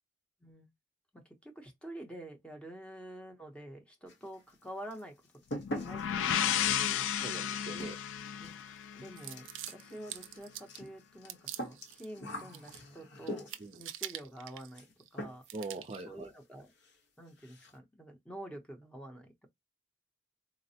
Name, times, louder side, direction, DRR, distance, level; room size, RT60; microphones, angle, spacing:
voice 1, 1.1-5.2 5.5-7.6 8.4-8.5 8.9-13.5 13.8-14.9 15.1-15.5 16.1-16.7 17.2-19.5, right 1 dB, 5° left, 0.7 m, -48 dB
sound 1, 4.1-4.6 4.9-13.8 14.7-14.9 15.2-15.7 15.9-16.0 16.4-16.5 16.8-17.0 17.3-17.8, equal, 65° left, 1.0 m, -44 dB
sound 2, 5.6-9.4, left 9 dB, 90° left, 0.3 m, -33 dB
voice 2, 7.2-8.1 13.6-13.8 15.5-16.3, right 3 dB, 35° right, 0.5 m, -42 dB
sound 3, 9.2-10.9 11.3-12.1 12.4-13.0 13.3-15.1 15.4-16.0, right 13 dB, 90° right, 0.4 m, -45 dB
4.0 x 2.0 x 2.7 m
head